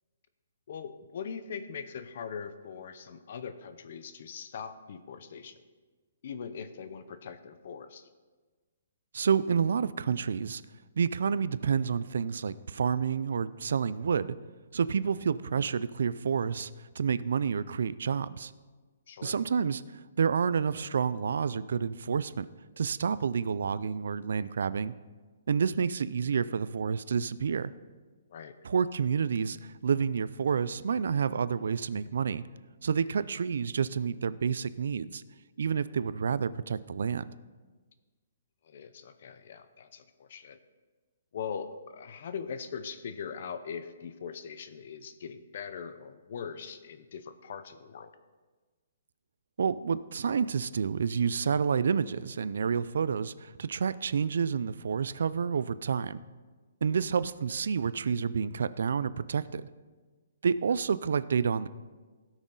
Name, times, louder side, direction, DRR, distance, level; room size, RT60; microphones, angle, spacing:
voice 1, 0.7-5.6 6.2-8.1 19.1-19.4 28.3-28.6 38.6-40.6 41.3-48.1 56.9-57.1, left 6 dB, 45° left, 11 dB, 0.7 m, -41 dB
voice 2, 9.1-10.6 11.0-14.4 14.7-16.7 17.0-18.5 19.2-22.5 22.8-24.9 25.5-27.7 28.6-32.4 32.8-35.2 35.6-37.3 49.6-56.2 56.8-59.7 60.4-61.7, right 6 dB, 70° right, 16 dB, 0.4 m, -29 dB
17.0 x 6.2 x 3.9 m, 1.4 s
hypercardioid pair, 170°, 0 cm